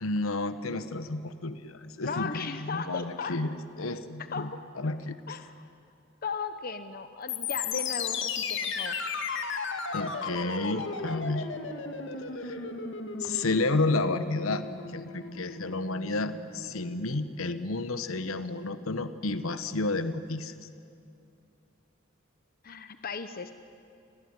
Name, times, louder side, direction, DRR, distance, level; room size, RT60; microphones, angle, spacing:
voice 1, 0.0-5.4 9.9-11.5 12.4-12.6 13.2-20.7, left 2 dB, 90° left, 12 dB, 1.1 m, -31 dB
voice 2, 2.1-3.4 4.3-4.6 5.3-5.7 6.2-9.0 22.6-23.5, left 5 dB, 45° left, 10 dB, 0.9 m, -36 dB
sound 1, 7.3-17.3, left 5 dB, 60° left, 2.3 m, -35 dB
28.0 x 20.5 x 9.7 m, 2.6 s
head